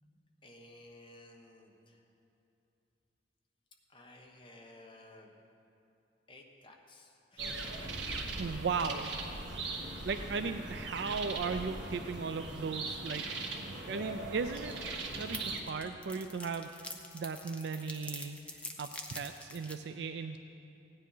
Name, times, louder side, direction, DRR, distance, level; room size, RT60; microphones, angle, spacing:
voice 1, 0.4-2.1 3.9-5.4 6.3-8.1 9.6-9.8, left 1 dB, 25° left, 1 dB, 1.1 m, -55 dB
sound 1, 7.4-15.6, right 3 dB, 90° right, 1.4 m, -40 dB
voice 2, 8.4-9.1 10.0-13.3 13.8-14.7 15.2-20.4, right 5 dB, 70° right, 8 dB, 0.4 m, -37 dB
sound 2, 14.6-14.7 15.0-19.7, left 2 dB, 5° left, 0.7 m, -45 dB
16.5 x 9.9 x 5.5 m, 2.7 s
head